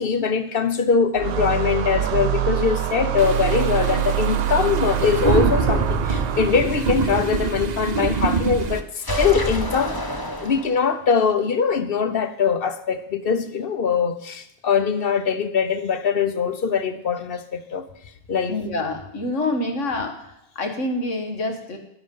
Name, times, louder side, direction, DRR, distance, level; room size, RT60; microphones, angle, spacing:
voice 1, 0.0-10.0 10.4-17.8 18.3-18.6, left 6 dB, 55° left, 0.9 m, -22 dB
sound 1, 1.2-6.9, right 10 dB, 85° right, 1.0 m, -25 dB
sound 2, 3.2-8.8, right 5 dB, 40° right, 0.8 m, -25 dB
sound 3, 9.0-11.1, equal, 20° left, 1.2 m, -27 dB
voice 2, 18.5-20.2 20.6-21.8, left 2 dB, 90° left, 2.0 m, -26 dB
11.0 x 10.0 x 5.5 m
omnidirectional pair, 1.2 m